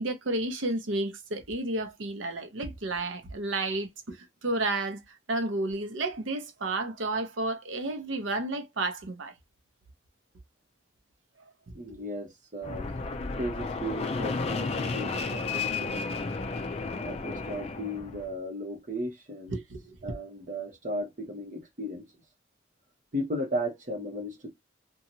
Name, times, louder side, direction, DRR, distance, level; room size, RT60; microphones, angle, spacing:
voice 1, 0.0-5.0 5.3-9.3 11.4-11.5 11.9-12.0 19.5-20.0, right 2 dB, 90° right, 0.7 m, -31 dB
voice 2, 11.7-12.9 13.4-16.0 17.0-19.6 20.0-22.1 23.1-24.5, equal, 40° right, 0.9 m, -35 dB
Fixed-wing aircraft airplane, 12.6-18.3, left 4 dB, 35° left, 0.3 m, -32 dB
2.8 x 2.3 x 2.7 m
head